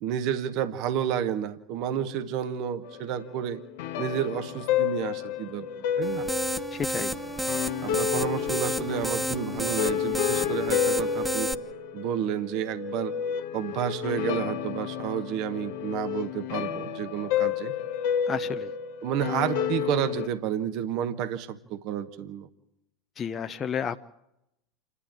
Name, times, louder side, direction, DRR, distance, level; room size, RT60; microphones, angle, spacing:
voice 1, 0.0-3.6 4.0-6.3 7.8-11.5 11.9-13.1 13.5-17.7 19.0-22.5, right 9 dB, 55° right, 10 dB, 1.2 m, -30 dB
sound 1, 2.8-20.3, left 9 dB, 65° left, 1.2 m, -31 dB
sound 2, 6.0-11.5, right 1 dB, 10° right, 1.0 m, -31 dB
voice 2, 6.7-7.1 18.3-18.7 23.2-24.0, left 7 dB, 30° left, 7 dB, 0.7 m, -31 dB
28.5 x 11.0 x 9.0 m, 0.85 s
hypercardioid pair, 80°, 0 cm